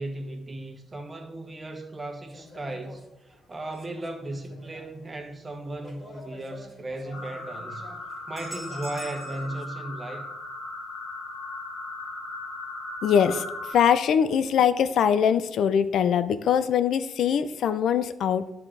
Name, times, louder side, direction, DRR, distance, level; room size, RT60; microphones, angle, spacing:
voice 1, 0.0-7.9 8.3-10.3, right 2 dB, 20° right, 1.1 m, -36 dB
sound 1, 2.3-9.7, left 1 dB, 25° left, 2.4 m, -46 dB
sound 2, 7.1-13.7, left 2 dB, 90° left, 2.1 m, -37 dB
voice 2, 13.0-18.5, left 8 dB, 70° left, 0.4 m, -22 dB
10.5 x 3.8 x 3.3 m
cardioid pair, 90°, 0 cm